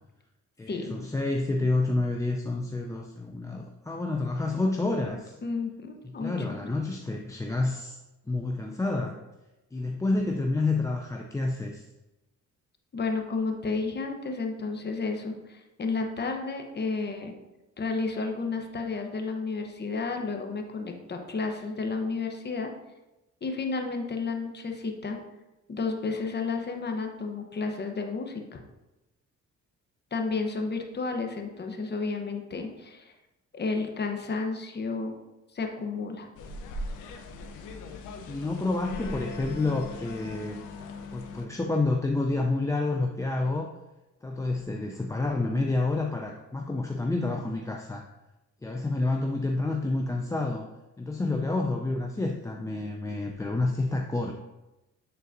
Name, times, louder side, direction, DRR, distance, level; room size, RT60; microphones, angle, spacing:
voice 1, 0.6-5.3 6.0-8.0 8.3-9.2 9.7-11.8 38.3-40.6 41.1-43.7 44.2-48.0 48.6-50.7 51.0-54.3, left 2 dB, 10° left, 1 dB, 0.4 m, -29 dB
voice 2, 5.4-6.6 12.9-17.4 17.8-22.7 23.4-25.2 25.7-28.6 30.1-33.1 33.5-35.1 35.5-36.3, left 4 dB, 35° left, 4 dB, 0.9 m, -32 dB
sound 1, 36.4-41.5, left 2 dB, 90° left, 0.7 m, -39 dB
9.2 x 3.9 x 2.6 m, 1.0 s
cardioid pair, 90°, 30 cm